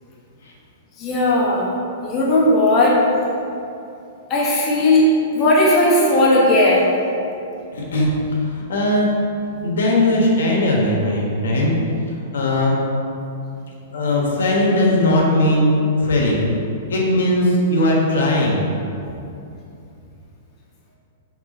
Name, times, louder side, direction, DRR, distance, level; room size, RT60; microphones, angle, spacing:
voice 1, 1.0-1.7 2.0-3.0 4.3-5.1 5.3-6.9, left 1 dB, 25° left, -5 dB, 1.1 m, -16 dB
voice 2, 7.7-9.1 9.6-11.7 12.3-12.8 13.9-15.7 16.0-16.5 16.9-18.7, left 1 dB, 85° left, -3 dB, 1.4 m, -18 dB
4.7 x 3.9 x 5.3 m, 2.7 s
hypercardioid pair, 145°, 0 cm